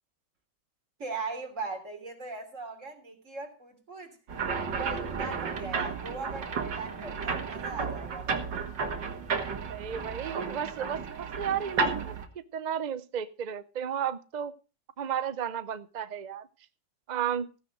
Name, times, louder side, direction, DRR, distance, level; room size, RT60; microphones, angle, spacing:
voice 1, 1.0-4.2 4.6-8.7, right 4 dB, 45° right, 3.5 m, -39 dB
sound 1, 4.3-12.3, right 5 dB, 80° right, 2.4 m, -33 dB
voice 2, 9.7-12.2 12.5-14.5 15.0-16.5 17.1-17.5, right 8 dB, 65° right, 0.4 m, -33 dB
15.5 x 9.8 x 4.9 m
omnidirectional pair, 1.9 m